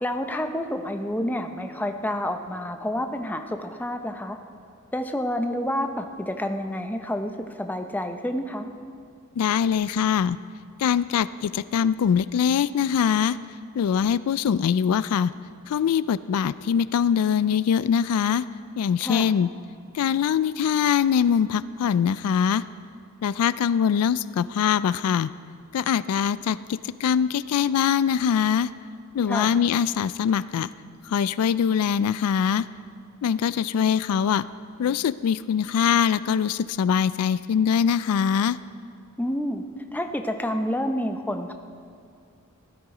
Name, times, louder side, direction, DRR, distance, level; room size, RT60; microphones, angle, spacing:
voice 1, 0.0-4.4 4.9-8.7 19.0-19.3 29.3-29.6 39.2-39.6 39.9-41.5, left 1 dB, 10° left, 6 dB, 0.6 m, -29 dB
voice 2, 9.4-10.4 10.8-13.4 13.7-15.3 15.7-18.5 18.8-19.5 19.9-22.6 23.2-25.3 25.7-28.7 29.1-30.7 31.1-32.6 33.2-34.4 34.8-38.6, left 7 dB, 85° left, 17 dB, 0.3 m, -23 dB
16.0 x 12.5 x 4.9 m, 2.3 s
head